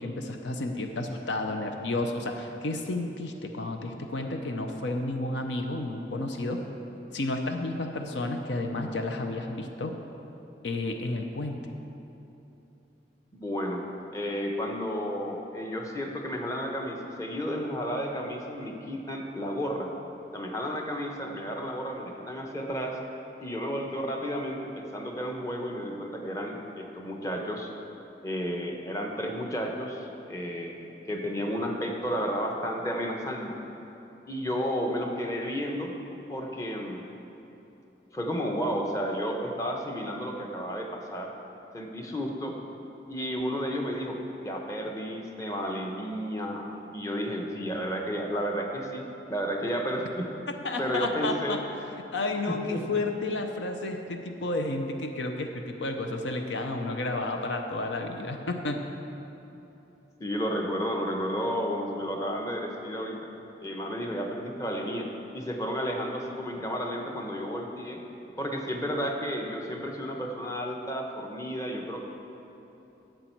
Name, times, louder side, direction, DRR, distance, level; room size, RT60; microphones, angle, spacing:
voice 1, 0.0-6.6 7.1-10.0 10.6-11.6 50.6-51.6 52.1-58.9, left 2 dB, 85° left, 4 dB, 0.7 m, -31 dB
voice 2, 13.3-13.8 14.1-19.9 20.3-23.0 23.4-27.7 28.2-33.6 34.3-35.9 36.3-37.1 38.1-41.3 41.7-42.6 43.1-49.0 49.3-50.3 50.8-51.6 52.5-52.8 60.2-63.2 63.6-68.0 68.4-72.0, equal, 20° left, 1 dB, 0.9 m, -32 dB
11.5 x 8.0 x 4.5 m, 3.0 s
head